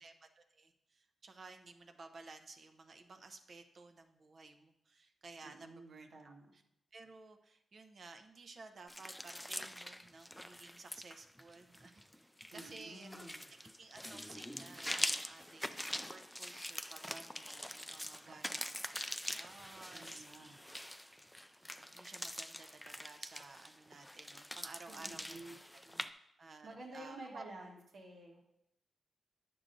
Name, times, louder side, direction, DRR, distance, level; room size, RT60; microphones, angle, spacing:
voice 1, 0.0-6.6 6.9-13.3 13.6-20.5 21.6-25.9 26.4-27.5, right 3 dB, 55° right, 7 dB, 0.7 m, -55 dB
voice 2, 5.4-6.5 12.5-13.4 18.2-18.4 19.8-20.6 24.9-25.6 25.8-26.0 26.6-28.4, right 2 dB, 75° right, -2 dB, 1.3 m, -51 dB
sound 1, 8.9-26.1, equal, 5° left, 0.4 m, -44 dB
9.7 x 6.2 x 2.6 m, 0.79 s
cardioid pair, 70°, 0 cm